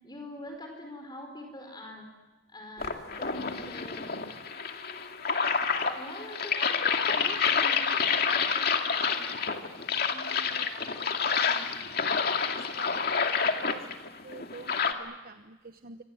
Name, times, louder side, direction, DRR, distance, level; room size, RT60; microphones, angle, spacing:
voice 1, 0.0-2.1 2.5-4.2 5.9-7.8 8.1-9.2 10.1-10.4 11.3-11.7, left 1 dB, 25° left, 3 dB, 5.0 m, -44 dB
sound 1, 2.8-14.9, left 6 dB, 55° left, 2.3 m, -28 dB
voice 2, 10.5-11.1 12.5-13.8 14.2-16.0, right 3 dB, 55° right, 8 dB, 1.0 m, -47 dB
26.5 x 25.5 x 8.0 m, 1.2 s
head